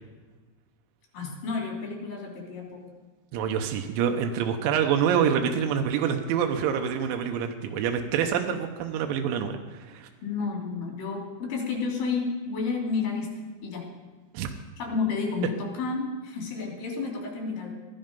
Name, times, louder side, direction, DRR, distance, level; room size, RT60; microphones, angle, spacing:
voice 1, 1.1-2.8 10.2-13.3 13.6-13.9 14.8-17.7, left 4 dB, 55° left, -1 dB, 4.7 m, -31 dB
voice 2, 3.3-10.1 14.3-14.5, right 8 dB, 85° right, 4 dB, 3.3 m, -26 dB
16.5 x 11.5 x 5.3 m, 1.3 s
omnidirectional pair, 5.2 m